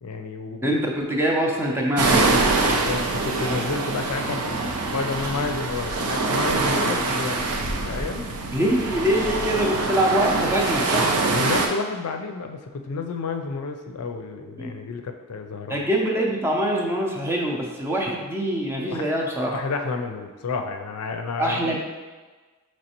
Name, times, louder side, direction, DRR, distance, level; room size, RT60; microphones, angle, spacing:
voice 1, 0.0-0.7 2.6-7.5 7.8-8.3 11.3-15.9 18.9-19.1 19.5-21.8, left 4 dB, 80° left, 5 dB, 0.4 m, -30 dB
voice 2, 0.6-2.4 8.5-11.1 14.6-14.7 15.7-19.5 21.4-21.8, equal, 10° right, -1 dB, 0.5 m, -24 dB
sound 1, 2.0-11.7, right 3 dB, 90° right, 0.6 m, -24 dB
5.2 x 3.1 x 2.9 m, 1.3 s
head